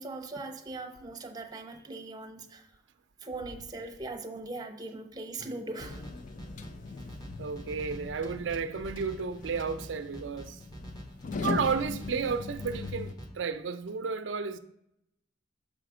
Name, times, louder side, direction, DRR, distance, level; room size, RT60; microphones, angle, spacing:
voice 1, 0.0-2.7 3.2-6.1 6.9-7.0, right 2 dB, 20° right, 0.7 m, -40 dB
sound 1, 5.8-13.1, left 4 dB, 45° left, 0.4 m, -40 dB
sound 2, 5.8-13.3, equal, 20° left, 1.1 m, -46 dB
voice 2, 7.4-10.6 11.4-14.6, right 5 dB, 90° right, 0.5 m, -32 dB
6.1 x 4.9 x 4.9 m
head